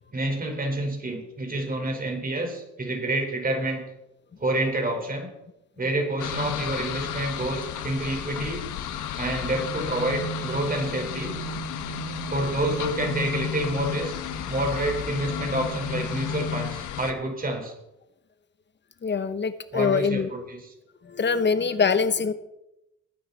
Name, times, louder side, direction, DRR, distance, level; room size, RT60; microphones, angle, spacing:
voice 1, 0.1-3.8 4.4-5.3 5.7-8.6 9.2-11.3 12.3-14.1 14.5-17.7 19.7-20.6, right 1 dB, 30° right, 2 dB, 4.8 m, -28 dB
sound 1, 6.2-17.1, left 7 dB, 80° left, 1.4 m, -32 dB
voice 2, 19.0-20.3 21.0-22.3, left 5 dB, 35° left, 11 dB, 1.1 m, -24 dB
19.0 x 9.5 x 4.2 m, 0.88 s
cardioid pair, 90°, 30 cm